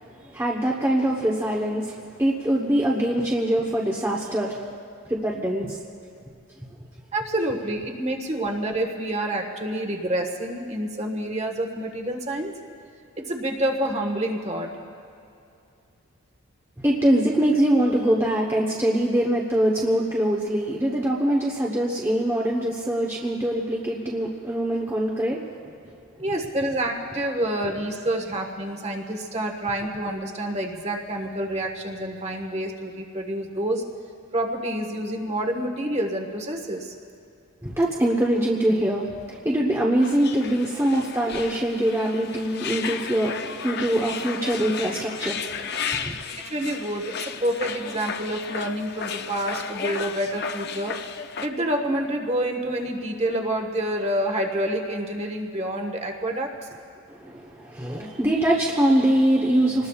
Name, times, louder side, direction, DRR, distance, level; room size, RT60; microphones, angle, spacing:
voice 1, 0.2-4.6 5.1-5.8 16.8-25.4 37.6-45.5 46.0-46.1 57.1-59.9, right 1 dB, 10° right, -3 dB, 1.0 m, -23 dB
voice 2, 7.1-12.5 13.2-14.7 26.2-33.8 34.3-36.9 46.4-50.9 51.4-56.5, right 1 dB, 30° right, 2 dB, 1.4 m, -28 dB
sound 1, 40.0-51.5, left 6 dB, 50° left, 0.6 m, -34 dB
26.5 x 19.5 x 2.4 m, 2.6 s
head